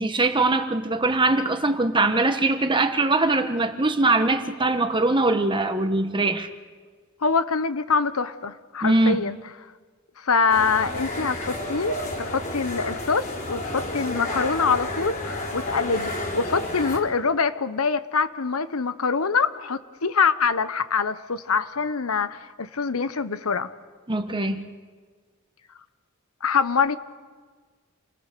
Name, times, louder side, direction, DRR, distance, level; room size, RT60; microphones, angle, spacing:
voice 1, 0.0-6.5 8.8-9.2 24.1-24.6, right 2 dB, 25° right, 7 dB, 1.3 m, -22 dB
voice 2, 7.2-9.4 10.2-23.7 26.4-27.0, left 5 dB, 85° left, 13 dB, 1.0 m, -24 dB
sound 1, 10.5-17.0, left 1 dB, 40° left, 3.8 m, -31 dB
28.5 x 20.5 x 6.8 m, 1.5 s
head